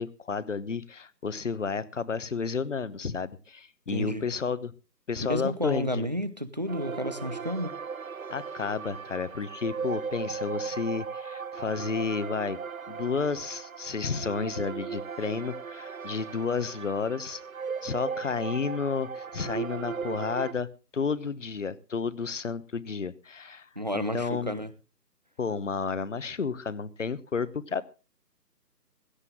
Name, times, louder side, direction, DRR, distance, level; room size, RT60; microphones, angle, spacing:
voice 1, 0.0-4.7 5.1-6.1 8.3-12.6 12.9-17.4 17.8-20.7 20.9-23.7 23.9-24.6 25.4-27.8, left 5 dB, 45° left, 1.0 m, -31 dB
voice 2, 3.9-4.2 5.3-7.8 23.8-24.7, equal, 25° right, 0.6 m, -31 dB
sound 1, 6.7-20.5, right 6 dB, 55° right, 0.8 m, -37 dB
16.5 x 13.5 x 3.7 m
figure-of-eight pair, 155°, 50 cm